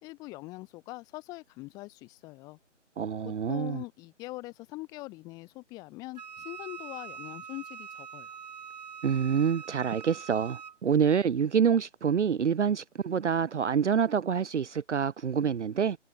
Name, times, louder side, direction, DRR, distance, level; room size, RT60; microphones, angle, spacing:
voice 1, 0.0-2.6 3.2-8.4, left 21 dB, 10° left, 2.0 m, -43 dB
voice 2, 3.0-3.8 9.0-16.0, right 7 dB, 70° right, 0.7 m, -27 dB
Wind instrument woodwind instrument, 6.2-10.8, right 7 dB, 35° right, 1.5 m, -44 dB
figure-of-eight pair, 160°, 37 cm